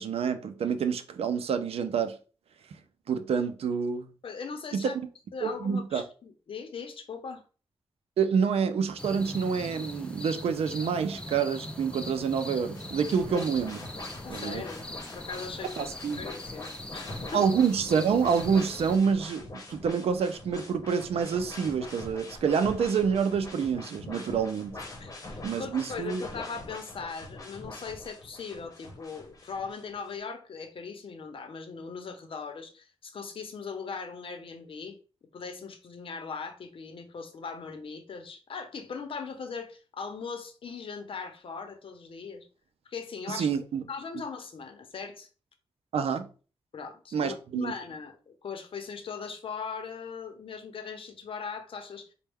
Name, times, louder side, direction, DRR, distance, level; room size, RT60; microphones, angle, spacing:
voice 1, 0.0-2.2 3.1-4.1 4.7-4.9 5.4-6.0 8.2-13.9 14.3-14.6 15.8-16.2 17.3-24.8 25.4-26.2 43.3-43.8 45.9-46.3 47.1-47.7, right 6 dB, 85° right, 0.5 m, -27 dB
voice 2, 4.2-5.0 5.3-7.4 14.2-15.9 16.2-17.5 25.0-35.0 35.3-42.5 42.9-43.5 43.9-45.3 46.7-52.1, left 5 dB, 65° left, 0.7 m, -39 dB
sound 1, 9.0-19.0, left 1 dB, 10° left, 0.5 m, -41 dB
sound 2, 12.7-30.1, left 2 dB, 35° left, 0.9 m, -43 dB
4.2 x 2.2 x 3.5 m
wide cardioid pair, 105°, 10 cm